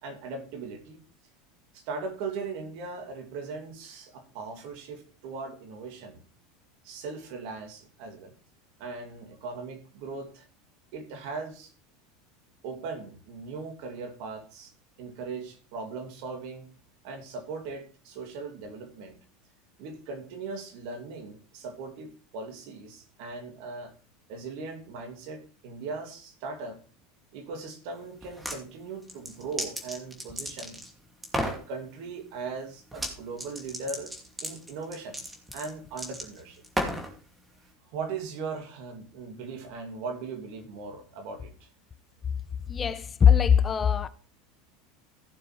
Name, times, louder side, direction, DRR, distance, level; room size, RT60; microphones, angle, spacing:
voice 1, 0.0-1.0 1.7-6.2 6.8-8.3 8.8-10.5 10.9-11.7 12.6-14.7 15.0-16.7 17.0-19.2 19.8-23.9 24.3-26.8 27.3-30.8 31.3-34.1 34.4-35.2 35.5-36.6 37.9-41.7, right 4 dB, 65° right, 2.6 m, -39 dB
sound 1, 28.2-28.6 29.1-30.9 31.2-31.6 32.9-33.1 33.4-37.1, equal, 10° right, 2.5 m, -33 dB
voice 2, 42.7-44.1, left 8 dB, 30° left, 0.7 m, -21 dB
15.5 x 6.8 x 3.3 m
hypercardioid pair, 90°, 0 cm